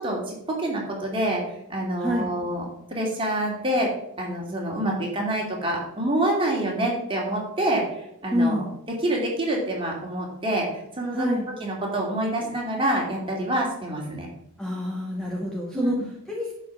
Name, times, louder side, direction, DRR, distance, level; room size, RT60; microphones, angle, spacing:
voice 1, 0.0-1.4 1.7-2.6 2.9-3.9 4.2-7.9 8.2-8.6 9.0-10.7 11.0-11.3 11.6-14.3 15.7-16.0, right 1 dB, 25° right, -1 dB, 2.6 m, -26 dB
voice 2, 2.0-2.3 8.3-8.7 11.1-11.5 14.6-16.5, left 1 dB, 5° left, -3 dB, 1.2 m, -27 dB
11.0 x 5.0 x 6.0 m, 0.79 s
head